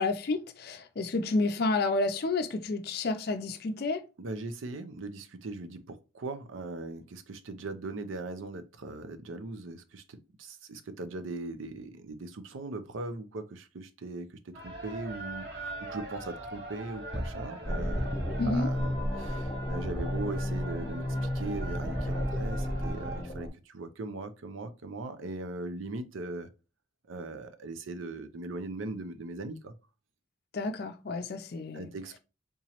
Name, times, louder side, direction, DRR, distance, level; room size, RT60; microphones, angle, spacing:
voice 1, 0.0-4.0 18.4-18.7 30.5-31.9, left 3 dB, 50° left, 0.4 m, -30 dB
voice 2, 4.2-18.1 18.4-26.5 27.1-29.7 31.7-32.2, right 2 dB, 80° right, 0.5 m, -39 dB
sound 1, 14.5-23.2, right 1 dB, 55° right, 0.9 m, -42 dB
sound 2, 17.1-18.5, equal, 5° right, 0.5 m, -41 dB
sound 3, 17.6-23.5, equal, 25° left, 0.8 m, -32 dB
3.7 x 3.0 x 2.9 m
head